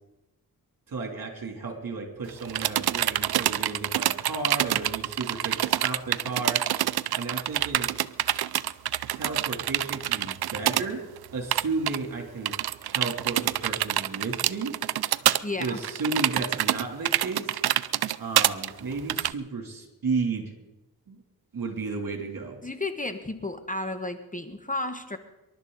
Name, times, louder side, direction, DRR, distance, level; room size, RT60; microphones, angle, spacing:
voice 1, 0.9-6.6 7.1-7.9 9.1-11.0 11.3-12.5 12.8-14.8 15.6-17.6 18.2-20.5 21.1-21.2 21.5-22.6, right 4 dB, 60° right, 3 dB, 3.3 m, -33 dB
sound 1, 2.3-10.9 11.2-11.3 11.5-12.0 12.5-19.3, right 12 dB, 75° right, 0.6 m, -26 dB
voice 2, 15.4-15.8 22.6-25.2, left 2 dB, 20° left, 8 dB, 1.3 m, -32 dB
26.0 x 12.0 x 4.1 m, 1.0 s
cardioid pair, 75°, 38 cm